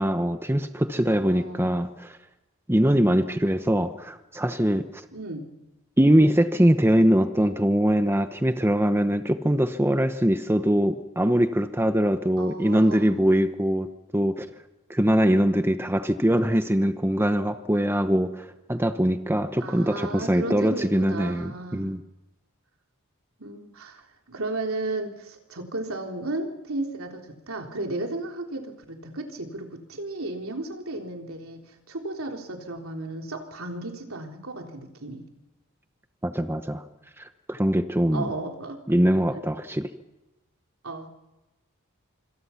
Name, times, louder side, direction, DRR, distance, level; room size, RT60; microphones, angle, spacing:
voice 1, 0.0-2.2 2.7-5.0 6.0-14.5 14.9-22.0 36.2-36.8 37.2-38.3 38.9-39.9, equal, 10° right, 8 dB, 1.0 m, -22 dB
voice 2, 1.3-1.7 3.2-3.9 5.1-5.5 12.4-13.2 19.6-21.9 23.4-35.2 38.1-38.8 40.8-41.1, right 2 dB, 70° right, 2 dB, 3.7 m, -34 dB
26.0 x 26.0 x 5.9 m, 1.0 s
head